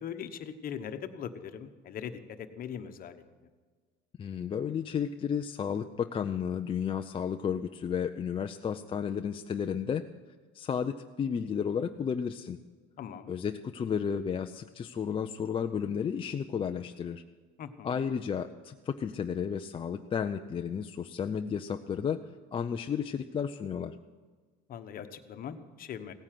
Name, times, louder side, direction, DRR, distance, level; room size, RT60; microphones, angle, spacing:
voice 1, 0.0-2.2 2.6-3.2 13.0-13.3 17.6-17.9 24.7-26.1, left 8 dB, 45° left, 9 dB, 1.2 m, -40 dB
voice 2, 4.2-10.1 10.5-12.6 13.3-17.2 17.8-22.2 22.5-24.0, left 7 dB, 25° left, 6 dB, 0.5 m, -32 dB
17.0 x 9.6 x 7.6 m, 1.5 s
cardioid pair, 125°, 21 cm